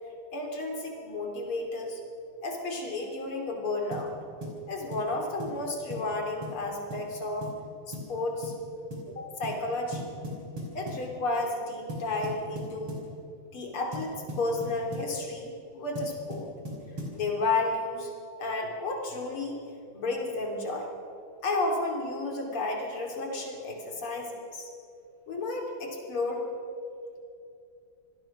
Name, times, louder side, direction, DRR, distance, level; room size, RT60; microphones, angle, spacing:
voice 1, 0.3-2.0 2.4-4.1 4.7-7.5 7.9-8.5 9.2-10.0 10.7-13.0 13.5-16.5 17.1-18.1 18.4-19.6 19.9-20.9 21.4-24.7 25.3-26.4, left 2 dB, 80° left, 2 dB, 4.0 m, -32 dB
sound 1, 3.9-4.1 4.4-4.6 4.9-5.1 5.4-5.6 5.9-6.1 6.4-6.6 6.9-7.1 7.4-7.6 7.9-8.1 8.4-8.6 8.9-9.1 9.4-9.6 9.9-11.1 11.9-13.1 13.9-15.1 16.0-17.2, equal, 80° right, 5.7 m, -38 dB
26.5 x 20.0 x 6.0 m, 2.6 s
omnidirectional pair, 2.3 m